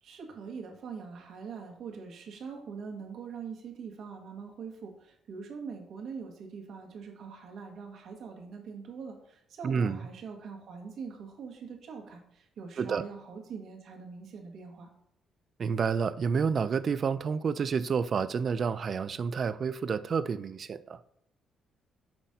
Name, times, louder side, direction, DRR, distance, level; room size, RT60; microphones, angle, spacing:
voice 1, 0.0-14.9, right 5 dB, 65° right, 1.5 m, -43 dB
voice 2, 9.6-10.0 12.8-13.0 15.6-21.0, right 6 dB, 50° right, 0.4 m, -29 dB
6.0 x 4.1 x 5.1 m
cardioid pair, 90°, 0 cm